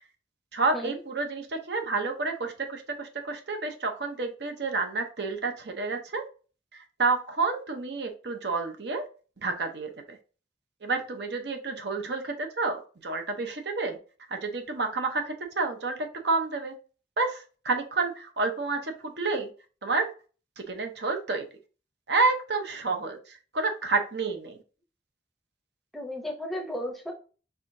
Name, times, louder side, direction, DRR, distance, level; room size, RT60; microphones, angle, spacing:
voice 1, 0.5-6.2 6.7-9.0 9.4-10.2 10.8-14.0 14.3-16.7 17.2-19.5 19.8-20.1 20.6-21.5 22.1-24.6, right 3 dB, 65° right, 5 dB, 0.8 m, -29 dB
voice 2, 25.9-27.1, left 1 dB, ahead, 2 dB, 0.7 m, -34 dB
4.9 x 3.6 x 2.6 m, 0.36 s
head